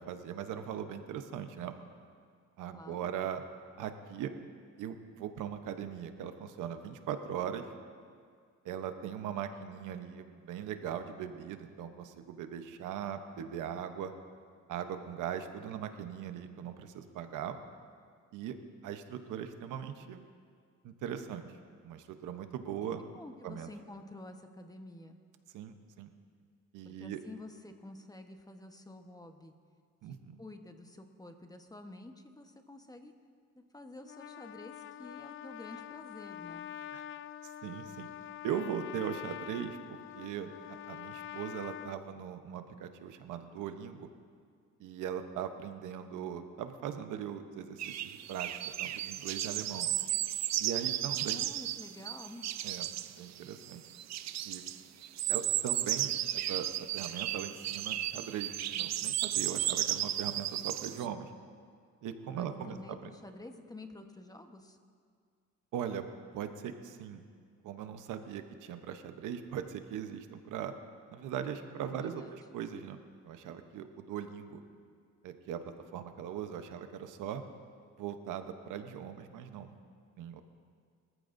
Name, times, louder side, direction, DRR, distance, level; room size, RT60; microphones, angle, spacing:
voice 1, 0.0-1.8 2.6-3.4 3.8-4.3 4.8-7.7 8.6-14.1 14.7-17.6 18.3-18.6 18.8-20.2 20.8-21.5 21.8-23.0 23.4-23.7 25.5-26.1 26.7-27.2 30.0-30.4 36.9-37.1 37.4-38.1 38.4-40.5 40.9-44.1 44.8-48.5 48.8-49.9 50.6-51.4 52.6-52.9 53.2-53.8 54.4-54.6 55.3-61.3 62.0-62.8 63.0-63.1 65.7-66.0 66.3-67.2 67.6-70.7 71.1-73.0 73.2-74.6 75.2-77.4 78.0-79.7 80.2-80.4, right 9 dB, 90° right, 8 dB, 0.9 m, -40 dB
voice 2, 2.7-3.2 23.1-25.2 26.8-29.5 30.0-33.1 33.7-36.7 51.3-52.5 62.3-64.8 71.9-72.4, left 2 dB, 10° left, 5 dB, 1.1 m, -49 dB
Trumpet, 34.0-42.0, left 11 dB, 45° left, 0.4 m, -45 dB
sound 1, 47.8-61.0, right 12 dB, 60° right, 0.5 m, -34 dB
23.5 x 14.0 x 2.6 m, 2.1 s
cardioid pair, 90°, 30 cm